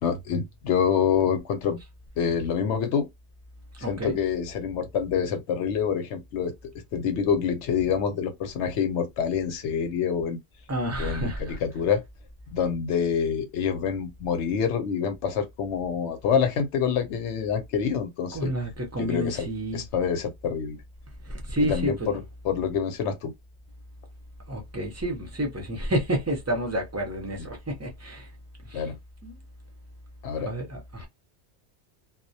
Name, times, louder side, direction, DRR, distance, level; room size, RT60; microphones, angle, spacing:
voice 1, 0.0-1.8 2.2-3.1 3.9-6.5 6.9-10.4 11.0-12.0 12.5-18.5 19.0-19.5 19.7-20.8 21.6-23.3 28.7-29.0 30.2-30.5, left 7 dB, 70° left, 0.8 m, -26 dB
voice 2, 3.8-4.2 10.7-11.6 18.3-19.8 21.2-22.2 24.5-28.3 28.7-28.8 29.2-29.3 30.5-31.1, equal, 20° right, 0.4 m, -30 dB
2.3 x 2.1 x 2.6 m
omnidirectional pair, 1.3 m